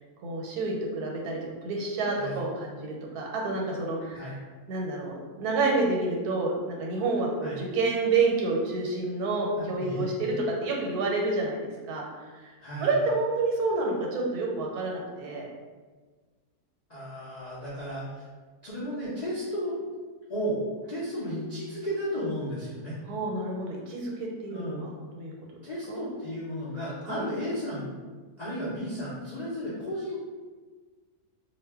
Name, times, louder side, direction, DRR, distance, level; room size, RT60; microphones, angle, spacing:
voice 1, 0.2-4.4 4.7-10.3 10.6-11.6 11.9-12.5 12.8-15.5 23.1-25.3 25.9-26.0 27.1-27.2, right 3 dB, 80° right, -1 dB, 1.1 m, -29 dB
voice 2, 9.6-10.1 12.6-13.0 16.9-18.3 18.6-19.8 20.3-20.6 20.9-23.0 24.5-24.8 25.6-27.9 28.4-30.2, equal, 75° left, -10 dB, 0.3 m, -34 dB
2.4 x 2.1 x 3.4 m, 1.4 s
omnidirectional pair, 1.6 m